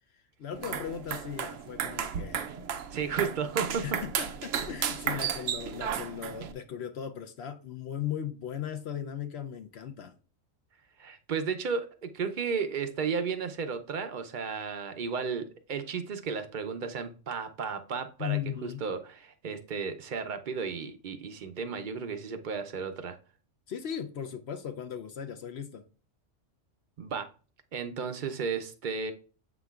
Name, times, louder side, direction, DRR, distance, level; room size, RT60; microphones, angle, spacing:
voice 1, 0.4-2.5 3.8-10.2 18.2-18.8 23.7-25.8, left 9 dB, 60° left, 0.8 m, -37 dB
sound 1, 0.5-6.5, right 8 dB, 85° right, 1.0 m, -34 dB
voice 2, 2.9-4.0 5.2-5.4 11.0-23.2 27.0-27.3 27.7-29.1, right 5 dB, 50° right, 0.6 m, -34 dB
7.7 x 6.0 x 2.4 m
omnidirectional pair, 1.3 m